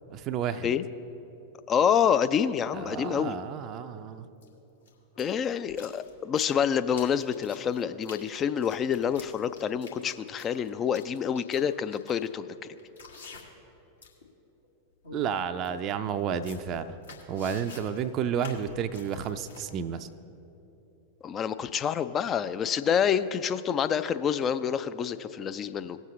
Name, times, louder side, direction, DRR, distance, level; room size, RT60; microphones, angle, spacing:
voice 1, 0.1-0.7 2.7-4.3 15.1-17.0 17.3-20.1, right 7 dB, 35° right, 10 dB, 0.5 m, -31 dB
voice 2, 1.7-3.4 5.2-12.5 21.2-26.0, left 8 dB, 25° left, 12 dB, 0.4 m, -27 dB
sound 1, 2.4-2.5 4.4-4.5 4.8-13.7 14.0-14.3 14.6-14.7 15.0-15.2 15.6-15.7 16.1-19.6, left 4 dB, 75° left, 1.5 m, -49 dB
19.0 x 7.3 x 3.1 m, 3.0 s
figure-of-eight pair, 90°, 0 cm